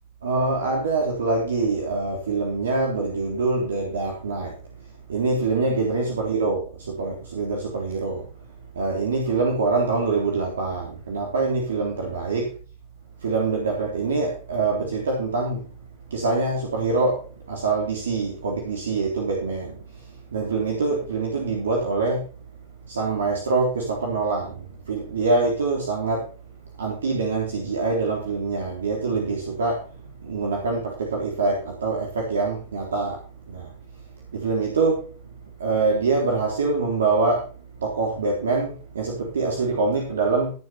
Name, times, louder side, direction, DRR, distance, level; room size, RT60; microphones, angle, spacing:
voice 1, 0.2-4.5 5.1-8.2 8.7-12.5 13.2-15.6 16.1-17.2 17.5-19.8 20.3-22.2 22.9-26.2 26.8-29.8 30.2-33.2 33.5-33.7 34.3-35.0 35.6-37.4 37.8-40.5, right 3 dB, 70° right, -1 dB, 3.4 m, -24 dB
16.0 x 7.3 x 4.4 m, 0.38 s
figure-of-eight pair, 90°, 0 cm